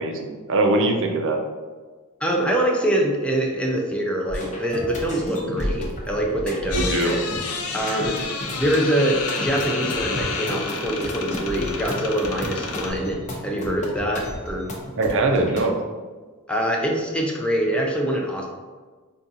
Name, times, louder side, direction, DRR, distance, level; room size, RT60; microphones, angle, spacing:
voice 1, 0.0-1.4 6.7-7.2 15.0-15.8, right 2 dB, 60° right, 3 dB, 0.5 m, -22 dB
voice 2, 2.2-7.2 7.7-14.7 16.5-18.5, right 1 dB, 5° left, -1 dB, 0.4 m, -24 dB
sound 1, 4.3-15.6, left 1 dB, 35° left, 0.7 m, -33 dB
sound 2, 6.7-12.9, left 4 dB, 85° left, 0.5 m, -30 dB
4.8 x 2.3 x 2.7 m, 1.4 s
head